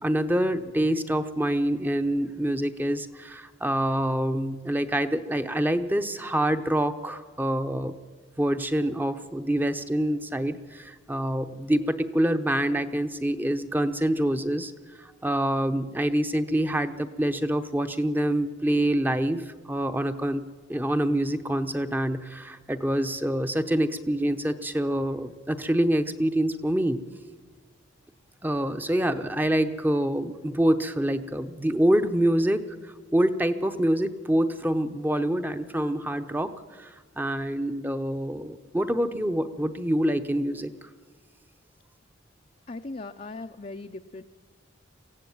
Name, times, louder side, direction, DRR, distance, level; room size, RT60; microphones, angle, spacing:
voice 1, 0.0-7.9 8.4-14.7 15.0-20.4 20.7-27.0 28.4-36.5 36.8-40.7, right 1 dB, 10° right, 9 dB, 0.8 m, -26 dB
voice 2, 42.7-44.2, left 2 dB, 35° left, 4 dB, 0.6 m, -38 dB
23.0 x 16.0 x 9.3 m, 1.5 s
head